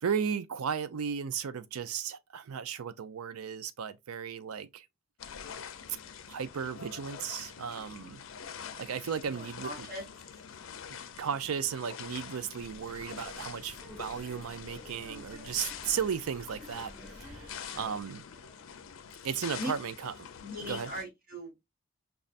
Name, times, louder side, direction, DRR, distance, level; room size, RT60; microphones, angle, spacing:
voice 1, 0.0-4.9 6.3-8.2 8.8-9.7 10.9-18.2 19.2-20.1 20.7-20.9, right 7 dB, 85° right, 0.4 m, -35 dB
sound 1, 5.2-21.0, left 7 dB, 70° left, 0.5 m, -46 dB
voice 2, 9.2-10.0 12.4-12.7 17.6-18.1 18.3-18.6 19.6-19.7 20.4-21.5, equal, 40° right, 1.7 m, -41 dB
sound 2, 12.6-18.0, left 1 dB, ahead, 1.2 m, -51 dB
5.2 x 2.4 x 2.4 m
head